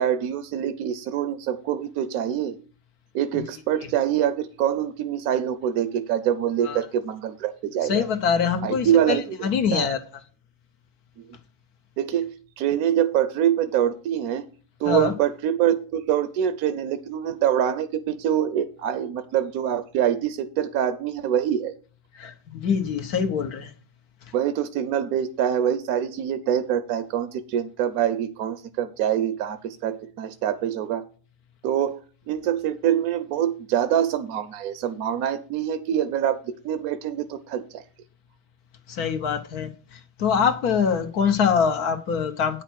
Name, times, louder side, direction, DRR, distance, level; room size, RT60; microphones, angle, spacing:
voice 1, 0.0-2.6 3.1-8.0 8.6-9.9 12.0-14.5 14.8-21.7 24.3-31.0 31.6-32.0 32.3-37.8, right 10 dB, 75° right, 1.1 m, -25 dB
voice 2, 7.8-10.0 14.9-15.1 22.2-23.7 38.9-42.6, left 6 dB, 80° left, 1.6 m, -24 dB
9.2 x 5.7 x 6.2 m
omnidirectional pair, 1.6 m